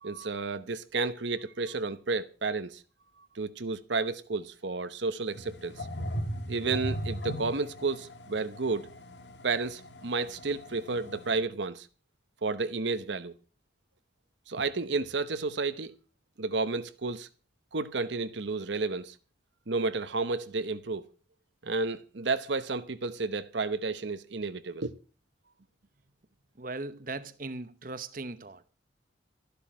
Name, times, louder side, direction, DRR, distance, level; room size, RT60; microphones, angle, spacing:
voice 1, 0.0-2.8 3.3-5.9 6.5-8.9 9.4-11.9 12.4-13.3 14.5-15.9 16.4-17.3 17.7-19.1 19.7-21.1 21.6-24.9, right 3 dB, 75° right, 0.9 m, -31 dB
sound 1, 5.3-11.4, equal, 70° left, 1.7 m, -38 dB
voice 2, 26.6-28.6, right 3 dB, 45° right, 1.0 m, -38 dB
13.0 x 11.5 x 6.2 m
head